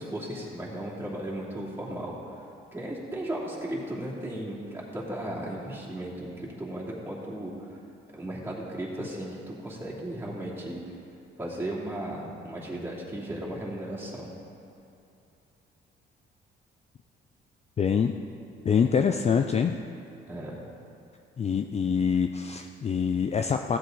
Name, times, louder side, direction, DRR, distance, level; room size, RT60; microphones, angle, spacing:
voice 1, 0.0-2.1 2.7-7.5 8.1-10.8 11.4-14.3 20.3-20.6, right 1 dB, 10° right, -6 dB, 2.9 m, -35 dB
voice 2, 17.8-18.1 18.6-19.8 21.4-23.8, left 6 dB, 35° left, 5 dB, 0.4 m, -25 dB
15.0 x 8.1 x 3.9 m, 2.8 s
cardioid pair, 90°, 20 cm